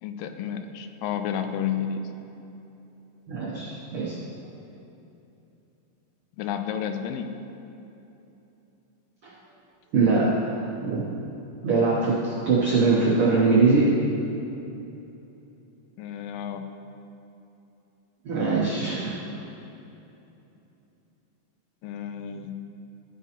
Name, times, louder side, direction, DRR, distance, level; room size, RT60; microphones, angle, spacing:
voice 1, 0.0-2.1 6.4-7.3 16.0-16.7 21.8-22.6, left 8 dB, 90° left, 7 dB, 2.3 m, -31 dB
voice 2, 3.3-4.1 9.2-9.3 9.9-10.5 10.8-11.2 11.6-13.9 18.2-19.2, right 3 dB, 80° right, -4 dB, 1.2 m, -22 dB
13.0 x 9.2 x 2.9 m, 2.9 s
omnidirectional pair, 3.9 m